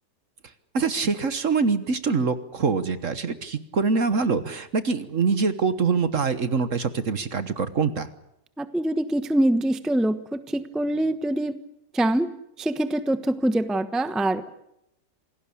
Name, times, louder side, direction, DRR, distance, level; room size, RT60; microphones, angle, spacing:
voice 1, 0.7-8.1, right 5 dB, 50° right, 12 dB, 1.5 m, -24 dB
voice 2, 8.6-11.6 11.9-12.3 12.6-14.5, right 1 dB, ahead, 11 dB, 0.9 m, -24 dB
27.5 x 18.0 x 8.5 m, 0.80 s
omnidirectional pair, 1.9 m